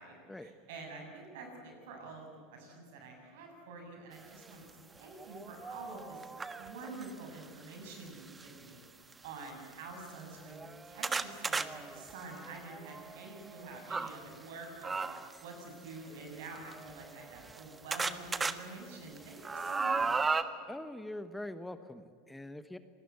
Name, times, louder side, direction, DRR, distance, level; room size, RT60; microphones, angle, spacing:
voice 1, 0.0-6.2 6.6-15.0 15.4-20.4, right 3 dB, 70° right, 3 dB, 7.2 m, -48 dB
sound 1, 4.5-4.6 5.1-7.1 8.1-8.5 9.1-9.2 9.5-9.6 10.2-14.1 14.8-15.4 16.4-17.6 17.9-18.5 19.0-20.4, right 4 dB, 20° right, 1.4 m, -36 dB
voice 2, 20.7-22.8, left 1 dB, 5° left, 11 dB, 1.2 m, -43 dB
27.0 x 19.5 x 8.2 m, 2.3 s
hypercardioid pair, 85°, 0 cm